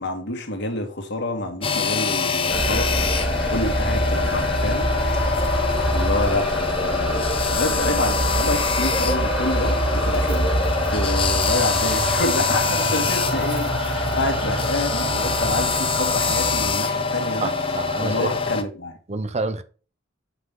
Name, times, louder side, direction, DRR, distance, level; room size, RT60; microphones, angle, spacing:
voice 1, 0.0-4.9 5.9-7.3 7.5-10.5 10.9-17.5 18.0-19.0, left 2 dB, 65° left, 2.1 m, -28 dB
sound 1, 1.6-18.6, left 4 dB, 30° left, 0.9 m, -24 dB
sound 2, 2.5-16.7, right 1 dB, 5° right, 2.1 m, -26 dB
sound 3, 9.1-17.9, right 2 dB, 65° right, 2.0 m, -40 dB
voice 2, 17.4-18.3 19.1-19.6, right 3 dB, 35° right, 0.6 m, -28 dB
7.5 x 5.9 x 3.8 m
head